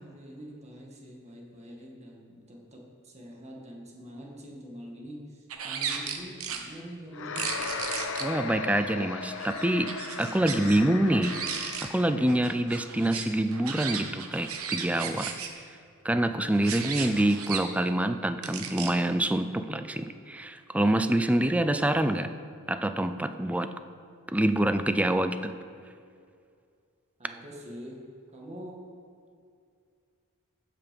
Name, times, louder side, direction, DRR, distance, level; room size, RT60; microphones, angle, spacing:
voice 1, 0.0-7.5 27.2-28.0 28.3-28.9, equal, 30° right, -1 dB, 1.9 m, -45 dB
sound 1, 5.5-6.6 7.4-8.2 9.2-10.8 11.1-11.9 12.3-15.5 16.5-17.6 18.4-18.9, right 7 dB, 70° right, 1.1 m, -35 dB
sound 2, 7.1-12.5, left 5 dB, 60° left, 0.7 m, -37 dB
voice 2, 8.2-9.9 10.2-11.4 11.9-15.3 16.0-22.3 22.7-23.7 24.3-25.5, right 1 dB, 5° right, 9 dB, 0.4 m, -26 dB
15.0 x 5.9 x 5.3 m, 2.3 s
head